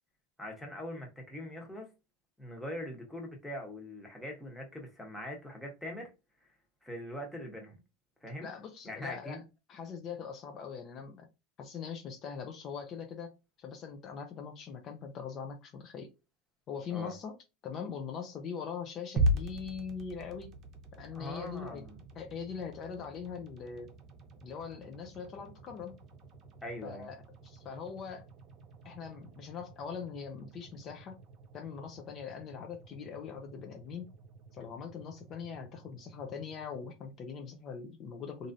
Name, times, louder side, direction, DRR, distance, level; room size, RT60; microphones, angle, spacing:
voice 1, 0.4-1.9 2.4-6.1 6.8-7.8 8.2-8.5 8.8-9.4 16.9-17.1 21.1-22.0 26.6-27.1, left 1 dB, 5° left, 1.0 m, -42 dB
voice 2, 8.4-9.4 9.7-11.3 11.6-13.3 13.6-16.1 16.7-17.4 17.6-20.6 20.9-21.9 22.1-23.9 24.4-26.0 26.8-27.2 27.4-28.3 28.8-31.2 31.5-34.1 34.5-38.5, left 6 dB, 40° left, 0.5 m, -42 dB
sound 1, 19.2-37.4, right 1 dB, 40° right, 0.8 m, -41 dB
3.0 x 2.6 x 2.6 m
supercardioid pair, 125°, 0 cm